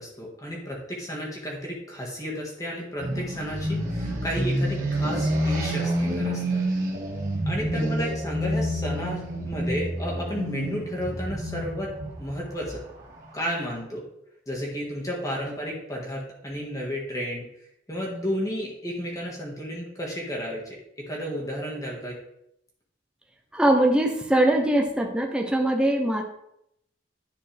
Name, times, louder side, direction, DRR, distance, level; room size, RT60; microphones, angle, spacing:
voice 1, 0.0-6.6 7.4-11.9 12.2-12.8 13.3-14.0 14.5-17.4 17.9-20.8 21.1-22.1, equal, 15° left, -3 dB, 1.6 m, -32 dB
sound 1, 3.0-13.7, equal, 45° right, 1.7 m, -28 dB
voice 2, 23.5-26.2, right 1 dB, 5° right, 2 dB, 0.7 m, -22 dB
10.5 x 4.4 x 3.4 m, 0.78 s
head